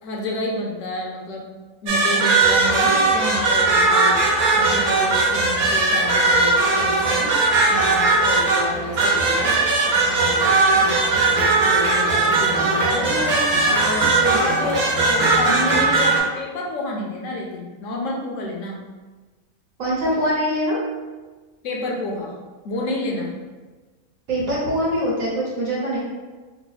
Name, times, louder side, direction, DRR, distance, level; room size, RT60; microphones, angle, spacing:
voice 1, 0.0-1.5 1.8-4.2 4.6-7.3 7.7-9.6 10.1-18.8 21.6-22.3 22.6-23.3, left 1 dB, 70° left, -1 dB, 0.9 m, -29 dB
sound 1, 1.9-16.2, right 3 dB, 85° right, 1.2 m, -19 dB
voice 2, 19.8-20.8 24.3-26.0, equal, 70° right, -6 dB, 1.2 m, -23 dB
3.3 x 2.0 x 3.9 m, 1.3 s
omnidirectional pair, 1.5 m